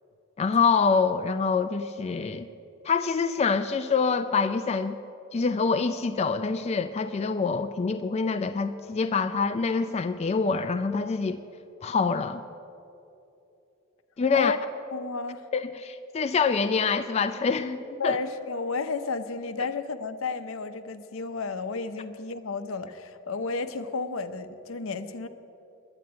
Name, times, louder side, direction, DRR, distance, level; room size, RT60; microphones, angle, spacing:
voice 1, 0.4-2.5 2.8-5.0 5.3-11.4 11.8-12.4 14.2-14.6 15.5-18.2, left 5 dB, 30° left, 8 dB, 0.4 m, -26 dB
voice 2, 14.9-15.5 18.0-25.3, left 4 dB, 75° left, 10 dB, 0.7 m, -32 dB
11.0 x 9.7 x 8.8 m, 2.8 s
head